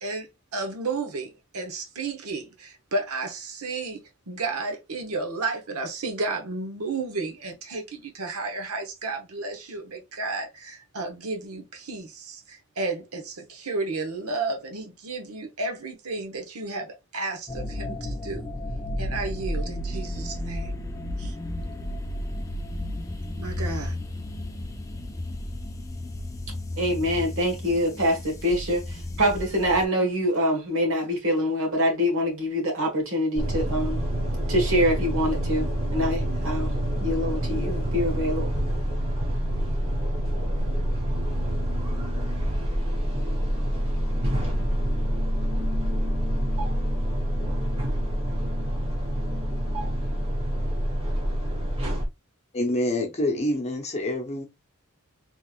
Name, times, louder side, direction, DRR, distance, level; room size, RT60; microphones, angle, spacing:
voice 1, 0.0-4.0 4.3-18.5 19.0-20.7 21.2-21.3 23.3-24.0, right 3 dB, 80° right, 1.0 m, -32 dB
sound 1, 17.5-29.8, left 1 dB, 15° left, 0.4 m, -33 dB
voice 2, 26.8-34.0 34.5-36.8 37.0-38.5, equal, 60° right, 1.5 m, -25 dB
sound 2, 33.4-52.0, equal, 25° right, 1.1 m, -27 dB
voice 3, 52.5-54.5, left 1 dB, 30° left, 0.8 m, -26 dB
3.5 x 3.1 x 2.4 m
head